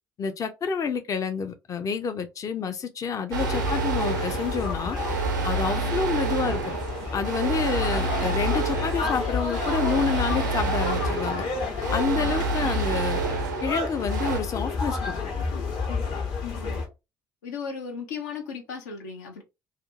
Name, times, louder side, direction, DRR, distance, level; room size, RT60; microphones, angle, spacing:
voice 1, 0.2-5.0 5.4-6.6 7.1-11.5 11.9-13.2 13.6-15.3, left 6 dB, 35° left, 0.5 m, -28 dB
sound 1, 3.3-14.4, right 6 dB, 80° right, 0.4 m, -29 dB
sound 2, 3.4-16.9, left 4 dB, 60° left, 1.1 m, -30 dB
voice 2, 16.5-16.8 17.4-19.4, left 5 dB, 75° left, 0.6 m, -36 dB
2.5 x 2.4 x 2.5 m
figure-of-eight pair, 50°, 10 cm